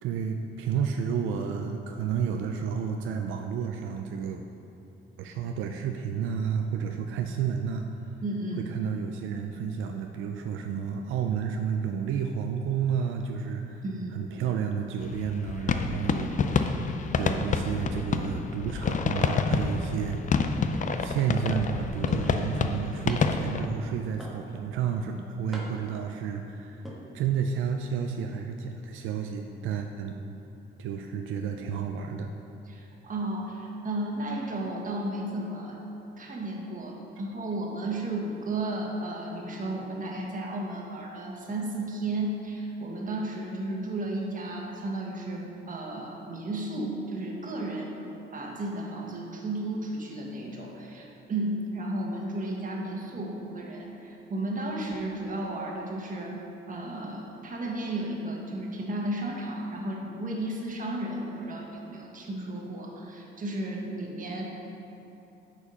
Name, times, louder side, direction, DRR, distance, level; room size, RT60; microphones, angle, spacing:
voice 1, 0.0-4.4 5.2-8.1 8.6-13.8 14.1-16.8 17.2-20.3 21.0-30.2 30.8-32.3, right 7 dB, 85° right, 4 dB, 0.5 m, -31 dB
voice 2, 8.2-8.6 13.8-14.1 32.7-35.9 36.2-48.1 48.3-56.4 56.7-64.7, right 1 dB, 40° right, -1 dB, 1.5 m, -33 dB
sound 1, 15.0-23.7, left 5 dB, 40° left, 0.5 m, -28 dB
sound 2, 22.1-22.4 23.1-23.5 24.2-24.7 25.5-26.0 26.7-27.0, equal, ahead, 1.4 m, -43 dB
8.5 x 4.9 x 5.4 m, 2.9 s
cardioid pair, 90°, 20 cm